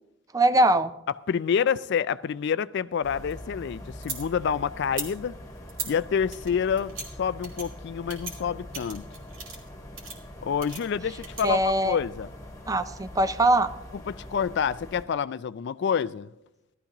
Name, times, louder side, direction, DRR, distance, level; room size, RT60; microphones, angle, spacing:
voice 1, 0.3-0.9 11.4-12.0 12.7-13.7, right 1 dB, 15° right, 0.5 m, -22 dB
voice 2, 1.3-5.3 5.8-9.1 10.4-11.6 11.8-12.3 14.1-16.3, left 7 dB, 60° left, 0.3 m, -28 dB
sound 1, 2.9-4.2 4.8-5.1 5.7-5.9 6.3-7.1 7.4-7.7 8.1-8.3 8.7-9.7 10.0-10.2 10.6-11.4, right 4 dB, 75° right, 2.6 m, -37 dB
sound 2, 3.0-15.0, left 1 dB, 15° left, 1.9 m, -43 dB
16.5 x 13.0 x 3.0 m
head